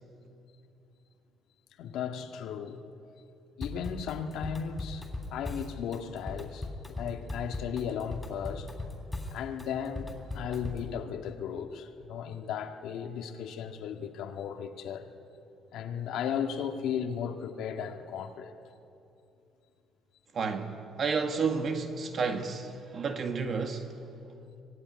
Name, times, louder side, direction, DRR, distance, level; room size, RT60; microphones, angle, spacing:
voice 1, 1.8-2.8 3.6-5.0 5.3-8.7 9.3-15.1 15.7-18.5, left 8 dB, 70° left, 1.8 m, -35 dB
Drum kit / Drum, 3.6-10.9, left 2 dB, 10° left, 3.1 m, -38 dB
voice 2, 20.3-24.0, right 5 dB, 35° right, 1.7 m, -31 dB
25.0 x 19.0 x 9.6 m
cardioid pair, 165°, 0 cm